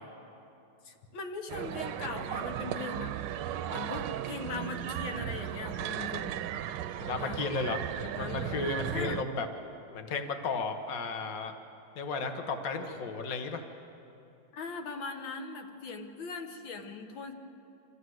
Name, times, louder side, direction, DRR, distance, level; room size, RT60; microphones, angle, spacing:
voice 1, 0.8-3.1 3.7-6.4 7.2-7.4 8.0-8.5 8.9-9.2 14.5-17.3, left 4 dB, 90° left, 4 dB, 2.0 m, -40 dB
sound 1, 1.5-9.2, right 11 dB, 75° right, 1.2 m, -36 dB
voice 2, 7.0-7.9 8.2-9.5 9.9-11.5 11.9-13.6, left 4 dB, 50° left, 5 dB, 1.6 m, -34 dB
25.5 x 14.5 x 7.9 m, 2.8 s
omnidirectional pair, 2.1 m